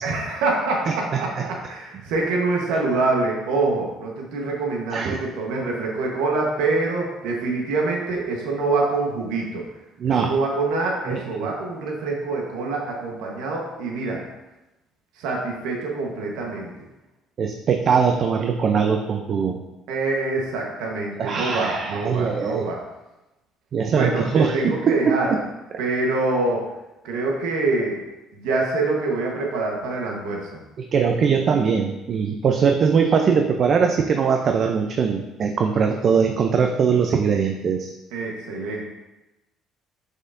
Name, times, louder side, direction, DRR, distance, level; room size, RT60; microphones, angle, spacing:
voice 1, 0.0-9.6 10.2-14.2 15.2-16.7 19.9-22.8 23.9-25.3 25.8-26.6 27.0-28.0 28.3-30.4 38.1-38.8, right 3 dB, 80° right, -1 dB, 1.1 m, -25 dB
voice 2, 0.9-1.4 4.9-5.2 10.0-10.3 11.1-11.5 17.4-19.6 21.2-22.7 23.7-25.4 30.8-37.9, right 6 dB, 50° right, 4 dB, 0.5 m, -21 dB
6.3 x 5.7 x 2.6 m, 1.0 s
supercardioid pair, 75°, 0 cm